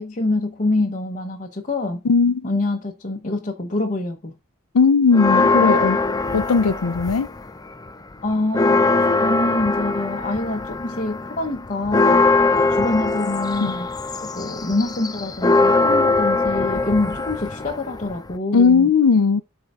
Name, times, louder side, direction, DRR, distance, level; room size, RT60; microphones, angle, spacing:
voice 1, 0.0-2.0 2.4-4.3 8.2-8.9 9.2-12.2 12.7-13.9 14.2-18.9, left 2 dB, 35° left, 0.9 m, -25 dB
voice 2, 2.0-2.4 4.7-6.0 6.3-7.3 13.6-13.7 18.5-19.4, left 5 dB, 80° left, 0.5 m, -17 dB
sound 1, 5.1-7.5 7.9-18.4, left 3 dB, 15° left, 0.5 m, -21 dB
12.5 x 4.6 x 2.5 m
head